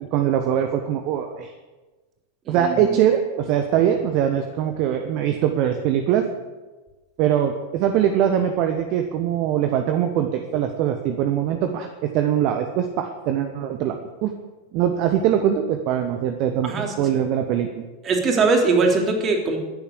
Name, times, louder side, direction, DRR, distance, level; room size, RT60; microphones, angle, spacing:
voice 1, 0.1-1.5 2.5-6.2 7.2-14.3 14.7-16.7 17.0-17.8, right 9 dB, 40° right, 6 dB, 1.3 m, -22 dB
voice 2, 2.5-3.0 16.6-17.1 18.0-19.6, right 3 dB, 25° right, 2 dB, 3.2 m, -21 dB
13.5 x 10.5 x 8.4 m, 1.2 s
figure-of-eight pair, 90°, 0 cm